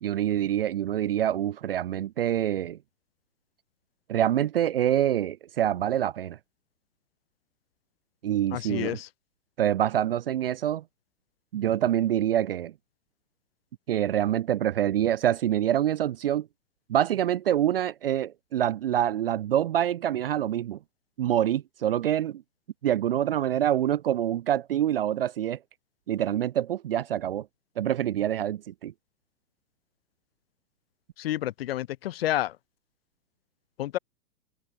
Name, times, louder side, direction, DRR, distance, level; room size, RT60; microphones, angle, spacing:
voice 1, 0.0-2.8 4.1-6.4 8.2-9.0 9.6-10.8 11.5-12.7 13.9-16.5 16.9-20.8 21.2-22.4 22.8-25.6 26.1-27.5 27.8-28.9, right 11 dB, 35° right, 0.6 m, -26 dB
voice 2, 8.5-9.1 31.2-32.6 33.8-34.0, left 14 dB, 35° left, 1.0 m, -29 dB
open air
hypercardioid pair, 160°, 48 cm